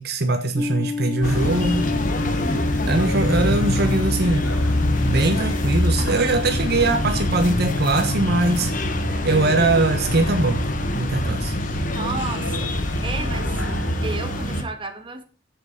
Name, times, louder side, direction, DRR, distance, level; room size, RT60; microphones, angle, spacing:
voice 1, 0.0-1.8 2.9-4.5 4.8-8.7 9.2-11.5, right 2 dB, 55° right, 1.3 m, -22 dB
sound 1, 0.6-14.1, left 4 dB, 5° left, 1.6 m, -33 dB
sound 2, 1.2-14.6, equal, 80° left, 3.0 m, -28 dB
sound 3, 1.2-14.6, left 1 dB, 45° left, 1.2 m, -27 dB
voice 2, 11.9-13.6 14.0-15.2, right 3 dB, 25° right, 1.6 m, -32 dB
8.1 x 7.9 x 6.5 m
head